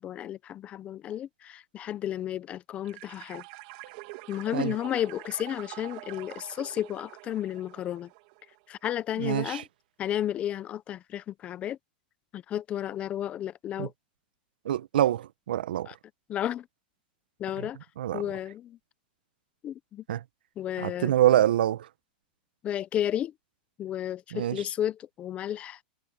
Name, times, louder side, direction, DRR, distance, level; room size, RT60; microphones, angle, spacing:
voice 1, 0.0-3.4 4.3-8.1 8.7-9.6 10.0-11.8 12.3-13.9 15.9-16.0 16.3-16.7 17.4-17.8 18.1-18.8 19.6-20.0 20.6-21.2 22.6-23.3 23.8-25.8, left 11 dB, 25° left, 0.9 m, -32 dB
sound 1, 2.8-8.6, right 23 dB, 50° right, 2.5 m, -45 dB
voice 2, 9.2-9.6 13.8-13.9 14.6-15.9 17.6-17.7 18.0-18.2 20.1-20.2 20.8-21.9 24.3-24.6, right 12 dB, 85° right, 1.1 m, -25 dB
supercardioid pair, 150°, 5 cm